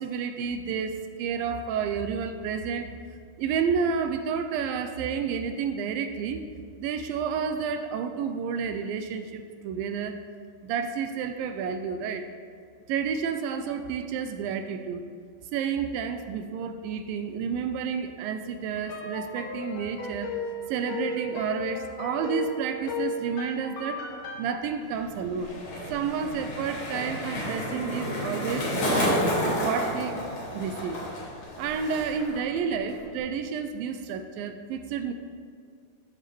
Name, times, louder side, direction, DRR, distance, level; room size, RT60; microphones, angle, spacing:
voice 1, 0.0-2.9 3.4-6.4 6.8-10.2 10.6-12.3 12.9-15.1 15.5-20.3 20.7-24.0 24.4-25.5 25.9-29.2 29.6-30.2 30.5-31.0 31.6-35.1, right 6 dB, 80° right, 8 dB, 2.3 m, -30 dB
sound 1, 18.8-24.5, left 2 dB, 70° left, 2.6 m, -34 dB
Skateboard, 24.8-32.4 32.6-33.1, equal, 50° left, 3.0 m, -30 dB
13.5 x 4.8 x 4.5 m, 2.2 s
omnidirectional pair, 4.2 m